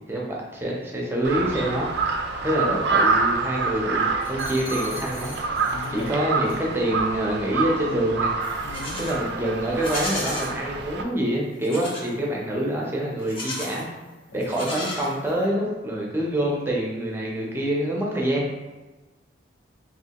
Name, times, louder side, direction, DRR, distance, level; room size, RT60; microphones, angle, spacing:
voice 1, 0.1-1.9 2.4-4.0 4.3-5.3 5.9-8.3 9.0-13.9 14.3-18.5, right 1 dB, 10° right, -3 dB, 0.5 m, -26 dB
Crow, 1.2-11.0, right 4 dB, 60° right, 0.3 m, -27 dB
sound 1, 4.2-6.1 6.4-6.7, left 2 dB, 80° left, 0.9 m, -41 dB
voice 2, 5.7-6.2 8.6-9.2 14.3-14.4, left 4 dB, 65° left, 5 dB, 0.3 m, -38 dB
Livestock farm animals working animals, 8.4-9.2 9.7-10.5 11.6-12.1 13.2-13.8 14.4-15.5, left 1 dB, 30° left, 0.8 m, -33 dB
3.2 x 2.9 x 2.8 m, 1.2 s
head